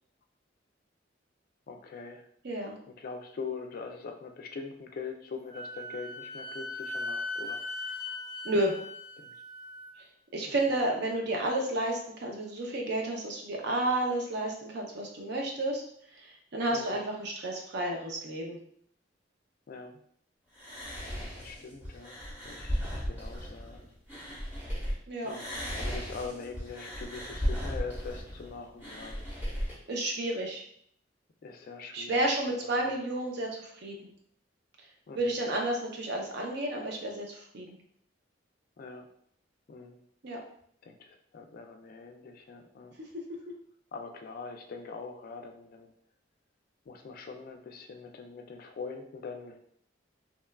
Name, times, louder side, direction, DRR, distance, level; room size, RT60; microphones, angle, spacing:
voice 1, 1.7-2.3 3.0-7.6 9.2-9.3 10.4-10.8 16.7-17.0 19.7-20.0 21.0-22.2 22.4-23.8 25.2-29.5 31.4-32.9 35.1-35.3 38.8-39.1 39.7-40.0 40.8-42.9 43.9-45.9 46.9-49.6, left 4 dB, 50° left, 4 dB, 0.3 m, -43 dB
voice 2, 2.4-2.8 8.4-8.7 10.3-15.8 16.1-18.6 25.1-25.3 29.9-30.6 31.9-34.0 35.2-37.8 40.2-40.4, right 1 dB, 60° right, 1 dB, 0.6 m, -31 dB
Wind instrument woodwind instrument, 5.5-9.9, left 2 dB, 20° left, 0.7 m, -39 dB
sound 1, 20.6-24.9 25.2-29.7, equal, 10° right, 0.9 m, -36 dB
2.9 x 2.2 x 2.2 m, 0.64 s
head